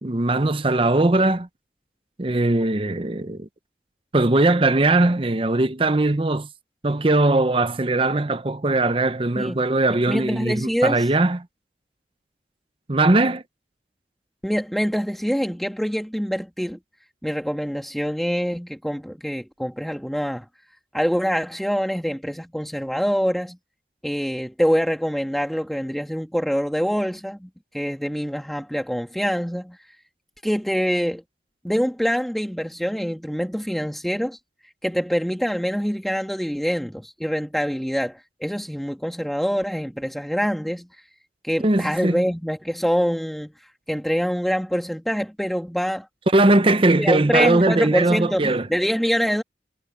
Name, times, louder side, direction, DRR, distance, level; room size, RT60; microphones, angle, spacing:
voice 1, 0.0-1.5 2.2-3.5 4.1-6.5 6.8-11.4 12.9-13.4 41.6-42.2 46.3-48.7, right 2 dB, 30° right, 0.7 m, -20 dB
voice 2, 10.1-11.1 14.4-16.8 17.2-20.5 20.9-23.6 24.0-27.5 27.7-29.8 30.4-31.2 31.6-34.4 34.8-40.9 41.4-43.5 43.9-46.1 47.0-49.4, equal, ahead, 1.8 m, -25 dB
head